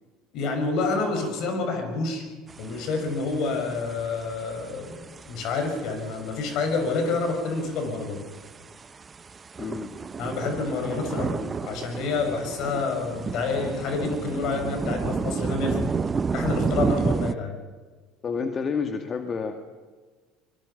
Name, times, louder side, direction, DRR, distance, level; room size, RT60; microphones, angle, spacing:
voice 1, 0.3-2.3 2.6-8.2 10.2-16.0 16.3-17.6, left 3 dB, 60° left, 5 dB, 6.7 m, -28 dB
sound 1, 2.5-17.4, right 5 dB, 30° right, 0.9 m, -32 dB
voice 2, 9.6-10.0 18.2-19.5, left 5 dB, 35° left, 5 dB, 2.1 m, -29 dB
25.0 x 23.0 x 5.9 m, 1.4 s
hypercardioid pair, 75°, 0 cm